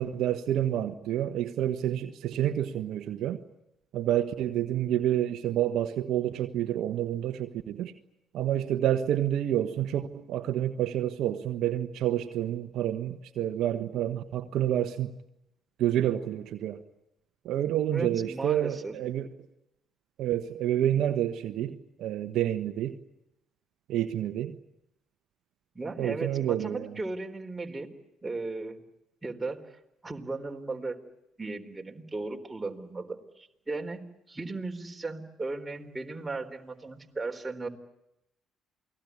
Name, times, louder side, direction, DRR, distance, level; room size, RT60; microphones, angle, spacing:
voice 1, 0.0-3.4 3.9-7.9 8.3-15.1 15.8-16.8 17.4-19.3 20.2-22.9 23.9-24.5 26.0-26.9, right 11 dB, 70° right, 8 dB, 1.2 m, -28 dB
voice 2, 17.9-18.9 25.7-27.9 28.2-28.8 29.2-31.0 31.4-37.7, right 3 dB, 20° right, 4 dB, 4.0 m, -36 dB
28.5 x 20.0 x 9.7 m, 0.85 s
hypercardioid pair, 55°, 0 cm